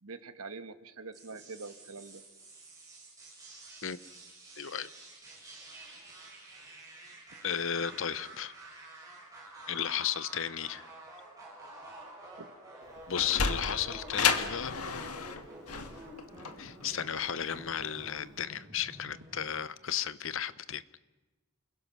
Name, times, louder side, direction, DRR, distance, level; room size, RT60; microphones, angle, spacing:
voice 1, 0.0-2.2 12.4-12.5, right 4 dB, 85° right, 1.4 m, -44 dB
sound 1, 1.1-19.6, right 1 dB, 15° right, 7.3 m, -50 dB
voice 2, 4.6-4.9 7.4-8.5 9.7-10.9 13.1-14.8 16.6-21.0, left 9 dB, 60° left, 0.8 m, -34 dB
Sliding door, 12.8-18.0, left 5 dB, 90° left, 1.7 m, -32 dB
29.0 x 21.5 x 6.2 m
head